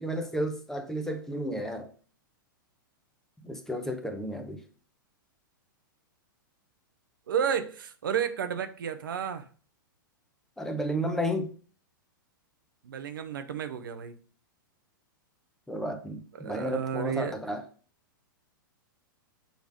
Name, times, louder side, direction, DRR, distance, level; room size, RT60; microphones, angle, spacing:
voice 1, 0.0-1.9 3.4-4.6 10.6-11.5 15.7-17.6, equal, 5° left, 0.9 m, -32 dB
voice 2, 7.3-9.4 12.8-14.1 16.3-17.4, right 8 dB, 70° right, 0.8 m, -31 dB
6.4 x 3.4 x 4.8 m
hypercardioid pair, 105°, 11 cm